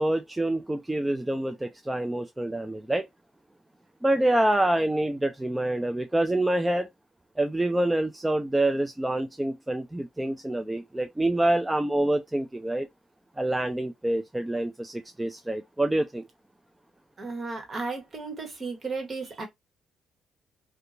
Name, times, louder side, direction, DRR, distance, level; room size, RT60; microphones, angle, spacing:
voice 1, 0.0-3.1 4.0-6.9 7.4-12.9 13.4-16.3, right 1 dB, 10° right, 0.3 m, -26 dB
voice 2, 17.2-19.5, right 4 dB, 35° right, 1.3 m, -34 dB
2.8 x 2.2 x 2.4 m
cardioid pair, 90°, 0 cm